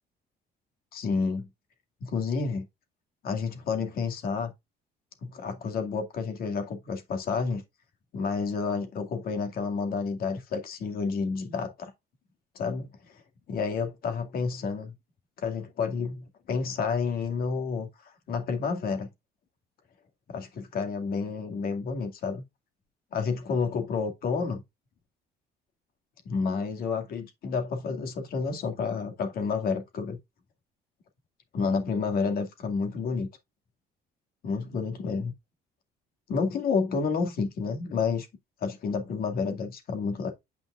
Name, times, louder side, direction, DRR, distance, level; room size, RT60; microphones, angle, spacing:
voice 1, 0.9-1.5 2.0-2.7 3.2-4.5 5.2-7.6 8.1-11.9 12.6-12.9 13.5-14.9 15.4-17.9 18.3-19.1 20.3-22.4 23.1-24.6 26.3-30.2 31.5-33.3 34.4-35.3 36.3-38.3 38.6-40.3, left 5 dB, 60° left, 2.2 m, -30 dB
9.2 x 5.2 x 2.5 m
cardioid pair, 110°, 17 cm